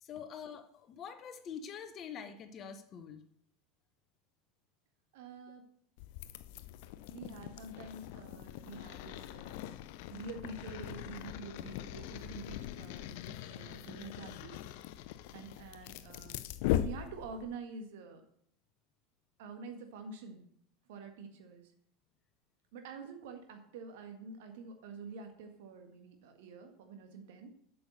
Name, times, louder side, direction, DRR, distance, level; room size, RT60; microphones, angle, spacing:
voice 1, 0.0-3.2, left 7 dB, 40° left, 9 dB, 1.1 m, -45 dB
voice 2, 5.1-5.8 7.1-9.6 10.1-14.6 15.3-16.4 16.8-18.2 19.4-20.5 20.9-21.7 22.7-27.5, right 4 dB, 65° right, 5 dB, 1.7 m, -47 dB
sound 1, 6.0-17.6, left 12 dB, 60° left, 0.5 m, -40 dB
8.0 x 6.9 x 6.5 m, 0.68 s
figure-of-eight pair, 80°, 0 cm